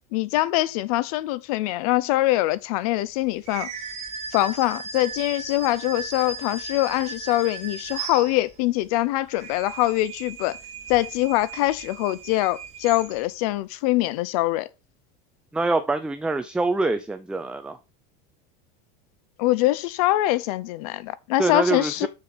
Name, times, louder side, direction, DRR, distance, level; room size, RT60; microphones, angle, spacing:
voice 1, 0.1-3.7 4.3-10.6 10.9-14.7 19.4-22.1, left 17 dB, 70° left, 0.7 m, -23 dB
sound 1, 3.4-8.7 9.2-13.4, right 5 dB, 35° right, 2.3 m, -37 dB
voice 2, 15.5-17.8 21.4-22.1, right 3 dB, 5° right, 0.5 m, -25 dB
7.0 x 6.5 x 4.8 m
supercardioid pair, 140°, 20 cm